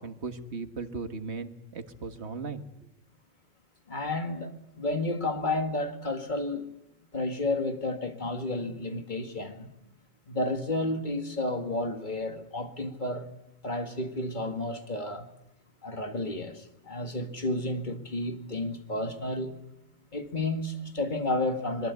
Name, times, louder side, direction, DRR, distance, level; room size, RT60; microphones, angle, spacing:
voice 1, 0.0-2.7, right 4 dB, 55° right, 1.9 m, -37 dB
voice 2, 3.9-6.7 7.1-9.7 10.3-13.3 13.6-15.3 15.8-19.6 20.1-21.9, left 2 dB, 35° left, 2.1 m, -31 dB
25.5 x 22.0 x 8.3 m
omnidirectional pair, 1.4 m